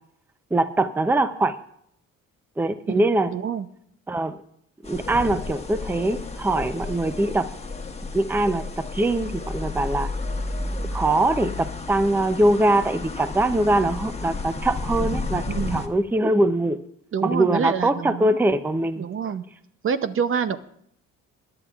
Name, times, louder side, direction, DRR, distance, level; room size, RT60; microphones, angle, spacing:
voice 1, 0.5-1.5 2.6-3.3 4.1-4.4 4.9-7.5 8.1-8.6 8.9-10.1 10.9-15.4 15.7-16.8 17.2-19.1, right 2 dB, 5° right, 10 dB, 0.6 m, -22 dB
voice 2, 2.9-3.7 15.5-15.8 17.1-18.4 19.0-19.4 19.8-20.6, right 7 dB, 45° right, 11 dB, 0.7 m, -27 dB
sound 1, 4.8-15.9, left 3 dB, 20° left, 1.1 m, -32 dB
21.5 x 10.5 x 2.4 m, 0.69 s
cardioid pair, 90°, 30 cm